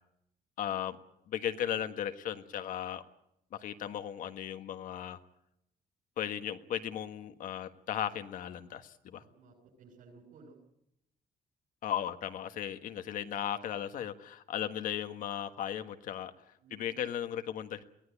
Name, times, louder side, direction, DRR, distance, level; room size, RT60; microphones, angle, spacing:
voice 1, 0.6-1.0 1.3-3.0 3.5-5.2 6.2-9.2 11.8-16.3 16.7-17.8, left 10 dB, 70° left, 8 dB, 1.5 m, -36 dB
voice 2, 9.2-10.6 16.6-17.1, right 3 dB, 65° right, -3 dB, 7.7 m, -57 dB
22.5 x 17.0 x 10.0 m, 0.80 s
cardioid pair, 170°, 14 cm